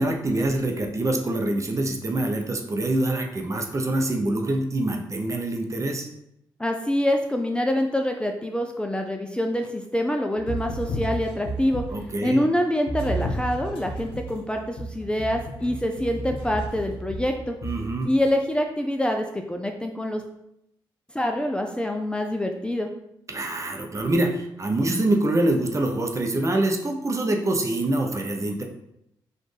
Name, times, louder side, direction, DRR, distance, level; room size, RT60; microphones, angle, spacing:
voice 1, 0.0-6.1 11.9-12.5 17.6-18.1 23.3-28.6, right 1 dB, 35° right, 3 dB, 0.7 m, -25 dB
voice 2, 6.6-11.8 12.2-17.6 18.0-20.2 21.1-22.9, left 1 dB, 10° left, 3 dB, 0.4 m, -25 dB
sound 1, 10.4-12.1 12.9-18.3, right 1 dB, 80° left, 0.7 m, -33 dB
4.2 x 2.5 x 3.3 m, 0.80 s
supercardioid pair, 55°, 9 cm